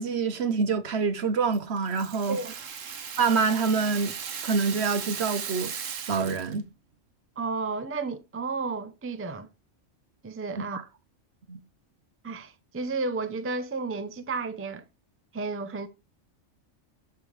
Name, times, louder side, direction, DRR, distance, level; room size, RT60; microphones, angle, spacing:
voice 1, 0.0-2.4 3.2-4.1 4.4-5.7 6.1-6.7 10.6-10.8 11.5-11.6, right 5 dB, 60° right, 1.1 m, -26 dB
Rattle (instrument), 1.5-6.6, right 7 dB, 85° right, 1.4 m, -37 dB
voice 2, 7.4-9.5 10.2-10.9 12.2-14.8 15.3-15.9, right 3 dB, 15° right, 0.5 m, -32 dB
12.5 x 5.4 x 3.2 m
omnidirectional pair, 1.3 m